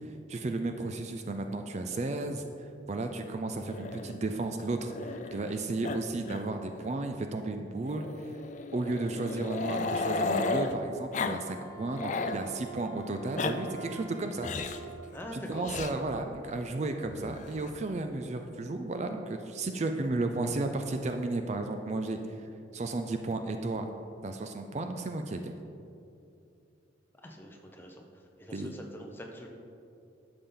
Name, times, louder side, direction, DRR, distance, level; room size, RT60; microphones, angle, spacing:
voice 1, 0.3-8.3 8.7-14.5 15.3-23.9 24.2-25.5 28.5-28.7, right 2 dB, 35° right, 6 dB, 0.4 m, -34 dB
Growling, 3.7-5.5 5.8-6.0 6.2-6.4 6.7-6.8 7.9-10.7 11.1-11.4 11.7-12.4 13.1-13.5 14.4-14.8 15.6-15.9 17.0-17.7, left 3 dB, 40° left, 0.4 m, -34 dB
Wind instrument woodwind instrument, 11.0-15.2, right 3 dB, 80° right, 1.3 m, -47 dB
voice 2, 15.1-15.7 27.2-28.1 28.4-29.5, equal, 10° left, 1 dB, 0.8 m, -44 dB
11.0 x 6.8 x 3.9 m, 2.6 s
head